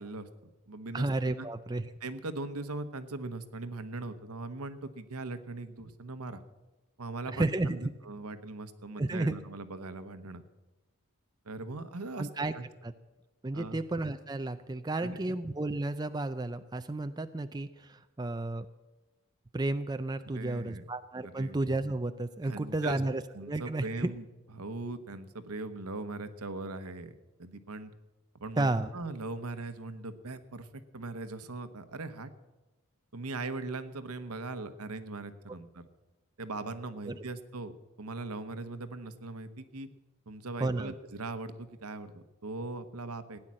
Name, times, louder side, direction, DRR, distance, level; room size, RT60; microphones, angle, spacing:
voice 1, 0.0-1.1 1.4-1.5 2.0-6.4 7.0-10.4 11.4-12.7 13.5-13.8 15.0-15.4 20.3-20.8 21.2-21.6 22.4-23.0 23.3-24.2 24.5-27.9 28.4-32.3 33.1-35.8 36.4-37.7 38.0-39.9 40.3-43.4, right 3 dB, 85° right, 11 dB, 1.1 m, -40 dB
voice 2, 0.9-1.9 7.3-7.9 9.0-9.4 12.2-12.5 12.8-12.9 13.4-18.7 19.5-24.1 28.6-28.9 37.1-37.2 40.6-40.9, right 2 dB, 20° right, 9 dB, 0.4 m, -32 dB
16.5 x 9.7 x 7.5 m, 1.1 s
head